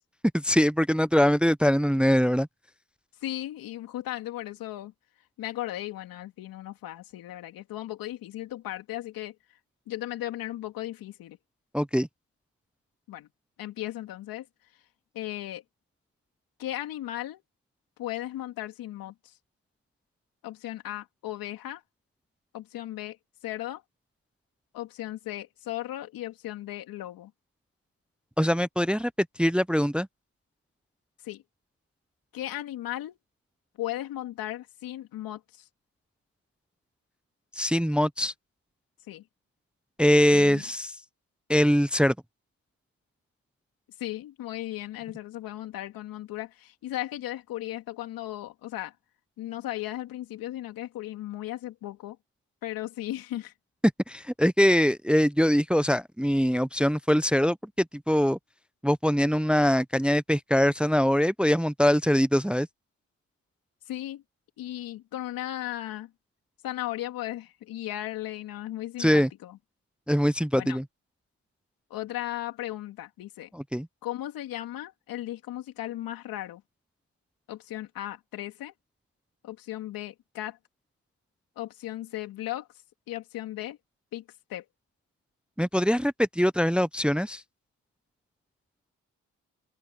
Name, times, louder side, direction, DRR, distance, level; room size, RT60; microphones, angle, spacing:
voice 1, 0.3-2.5 11.7-12.1 28.4-29.1 29.4-30.1 37.6-38.3 40.0-40.9 41.5-42.1 54.1-57.6 58.1-58.4 58.8-62.7 69.0-69.3 70.1-70.8 73.5-73.9 85.6-87.4, equal, 5° right, 0.6 m, -23 dB
voice 2, 3.2-4.9 5.4-9.3 9.9-11.4 13.1-13.3 13.6-14.4 15.1-15.6 16.6-17.4 18.0-19.1 20.4-21.8 22.5-23.2 23.4-23.8 24.7-27.3 31.2-31.4 32.3-33.2 33.8-35.7 39.1-39.2 40.3-40.6 44.0-48.9 49.4-52.2 52.6-53.5 63.9-64.2 64.6-66.1 66.6-69.6 70.5-70.8 71.9-73.5 74.0-76.6 77.5-78.7 79.4-80.6 81.6-82.7 83.1-83.8 84.1-84.2 84.5-84.6, left 14 dB, 90° left, 3.1 m, -36 dB
open air
supercardioid pair, 50°, 34 cm